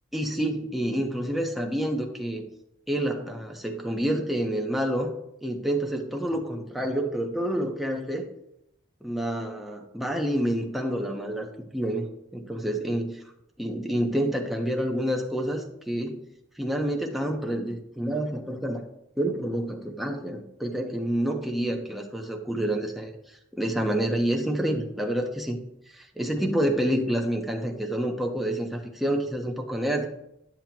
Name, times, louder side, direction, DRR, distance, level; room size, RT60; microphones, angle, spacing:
voice 1, 0.1-2.4 2.9-5.1 5.4-8.3 9.0-13.1 13.6-16.2 16.6-18.8 19.2-23.1 23.5-25.6 25.9-30.1, right 1 dB, ahead, 1 dB, 1.0 m, -28 dB
11.5 x 7.5 x 3.0 m, 0.81 s
head